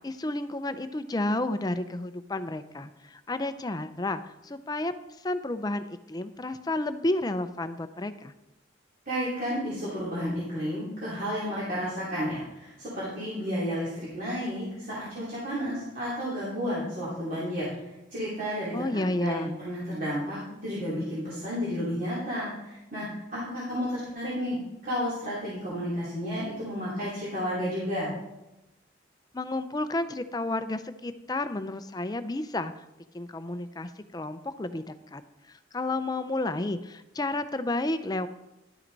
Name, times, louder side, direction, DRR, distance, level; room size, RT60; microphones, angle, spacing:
voice 1, 0.0-4.9 5.2-8.3 18.7-19.5 29.3-32.7 33.1-35.2 35.5-38.3, left 2 dB, 20° left, 11 dB, 0.5 m, -31 dB
voice 2, 9.0-24.6 24.8-28.1, equal, 45° right, -9 dB, 3.0 m, -32 dB
11.5 x 7.6 x 4.0 m, 0.95 s
head